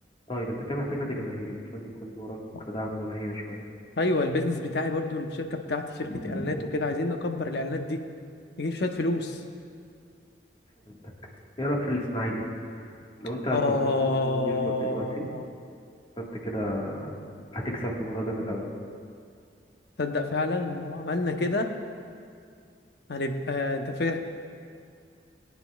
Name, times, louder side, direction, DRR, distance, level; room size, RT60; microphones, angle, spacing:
voice 1, 0.3-2.4 2.7-3.6 6.1-6.6 10.9-11.1 11.6-12.8 13.2-15.2 16.2-17.2 17.5-18.7, equal, 30° left, -2 dB, 1.6 m, -32 dB
voice 2, 4.0-8.0 8.6-9.4 13.5-15.4 20.0-21.7 23.1-24.2, left 2 dB, 65° left, 5 dB, 0.8 m, -28 dB
21.5 x 9.4 x 2.4 m, 2.3 s
head